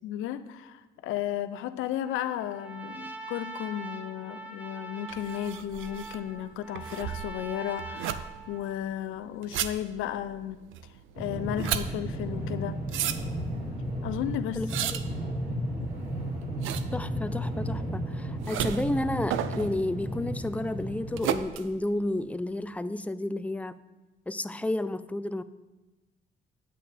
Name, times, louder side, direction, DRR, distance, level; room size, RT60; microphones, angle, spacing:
voice 1, 0.0-10.6 11.2-12.8 14.0-14.6, left 11 dB, 90° left, 12 dB, 0.5 m, -34 dB
Trumpet, 2.0-8.8, right 3 dB, 10° right, 1.0 m, -43 dB
sound 1, 5.1-22.7, right 10 dB, 80° right, 0.5 m, -36 dB
sound 2, 11.1-21.2, equal, 30° right, 3.1 m, -34 dB
voice 2, 14.5-15.0 16.9-23.8 24.3-25.4, left 1 dB, 5° left, 12 dB, 0.3 m, -31 dB
8.6 x 8.6 x 3.3 m, 1.1 s
cardioid pair, 90°, 20 cm